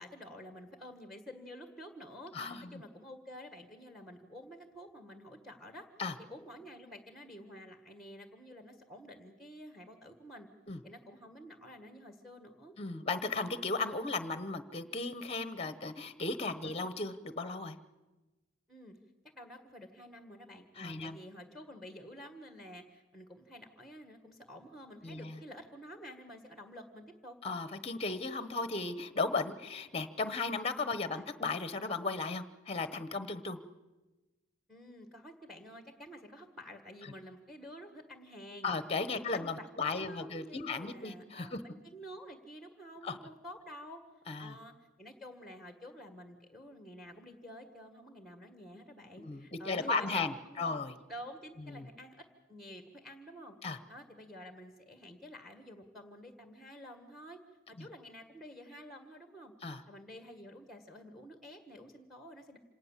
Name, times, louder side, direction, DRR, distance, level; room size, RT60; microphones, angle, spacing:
voice 1, 0.0-5.9 6.3-10.5 10.8-12.7 16.6-17.0 18.7-18.9 19.2-27.4 31.0-31.2 34.7-38.7 39.1-44.0 44.4-50.8 51.1-53.5 53.9-57.4 57.7-59.5 59.9-62.6, equal, ahead, 7 dB, 1.7 m, -50 dB
voice 2, 2.3-2.7 6.0-6.1 10.7-10.8 12.8-17.8 20.8-21.2 25.0-25.4 27.4-33.6 38.6-41.6 43.0-43.2 44.3-44.6 49.2-50.9 51.7-51.9 53.6-53.8 57.8-57.9 59.6-59.8, left 3 dB, 30° left, 12 dB, 1.0 m, -36 dB
26.5 x 18.5 x 7.4 m, 1.1 s
head